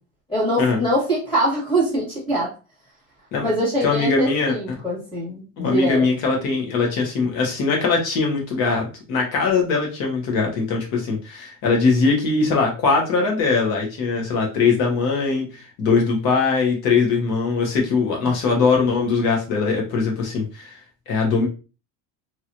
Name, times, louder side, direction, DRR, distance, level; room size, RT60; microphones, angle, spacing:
voice 1, 0.3-2.5 3.4-6.1 18.2-18.3, right 1 dB, 15° left, -6 dB, 1.8 m, -23 dB
voice 2, 3.8-4.8 5.6-20.8 21.1-21.5, left 4 dB, 50° left, 0 dB, 1.3 m, -21 dB
3.0 x 3.0 x 2.5 m, 0.32 s
cardioid pair, 155°, 42 cm